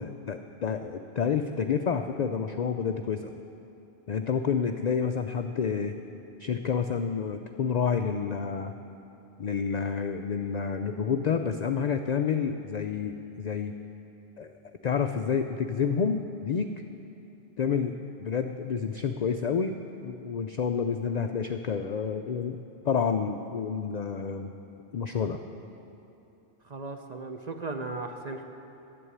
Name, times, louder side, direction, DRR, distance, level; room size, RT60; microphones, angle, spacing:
voice 1, 0.0-3.3 4.1-5.9 6.4-8.7 9.4-13.7 14.4-14.5 14.8-16.7 17.6-19.8 20.0-22.6 22.8-24.5 24.9-25.4, left 6 dB, 70° left, 6 dB, 0.4 m, -29 dB
voice 2, 26.6-28.4, right 3 dB, 45° right, 5 dB, 0.6 m, -36 dB
11.0 x 7.9 x 9.7 m, 2.9 s
omnidirectional pair, 1.2 m